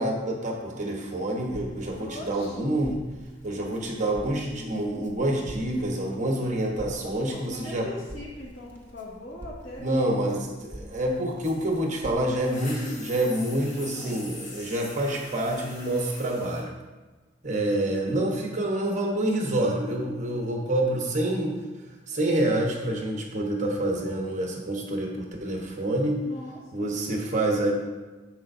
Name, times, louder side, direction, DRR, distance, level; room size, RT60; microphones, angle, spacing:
voice 1, 0.0-3.0 3.4-7.9 9.8-16.7 17.4-21.6 22.1-26.2 26.7-27.7, right 1 dB, 40° right, 0 dB, 1.1 m, -27 dB
Crackle, 1.4-12.3, equal, 10° left, 1.2 m, -47 dB
voice 2, 2.0-2.6 7.0-10.3 13.8-14.2 26.2-27.0, left 1 dB, 80° left, -5 dB, 1.9 m, -41 dB
sound 1, 11.4-16.6, left 2 dB, 40° left, 1.8 m, -44 dB
10.5 x 7.9 x 2.7 m, 1.3 s
head